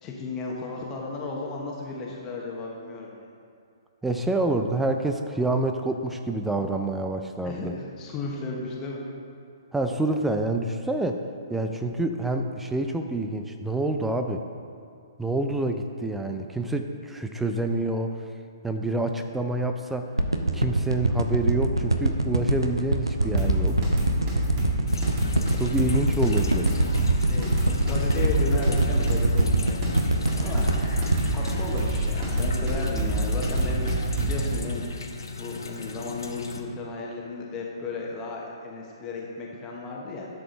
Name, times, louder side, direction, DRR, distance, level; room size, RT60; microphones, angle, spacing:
voice 1, 0.0-3.2 7.4-7.7 8.0-9.0 27.0-30.9 31.2-35.0 35.3-40.3, left 3 dB, 20° left, -2 dB, 1.2 m, -34 dB
voice 2, 4.0-7.8 9.7-11.2 11.5-14.4 15.2-18.2 18.6-20.1 20.5-23.8 25.5-26.7, right 2 dB, 5° right, 5 dB, 0.4 m, -27 dB
sound 1, 20.2-32.5 32.9-33.0, right 2 dB, 85° right, 0.7 m, -24 dB
sound 2, 23.2-34.6, right 1 dB, 30° right, 2.1 m, -27 dB
sound 3, 24.9-36.6, left 4 dB, 70° left, 0.9 m, -38 dB
11.5 x 6.7 x 3.9 m, 2.4 s
figure-of-eight pair, 125°, 2 cm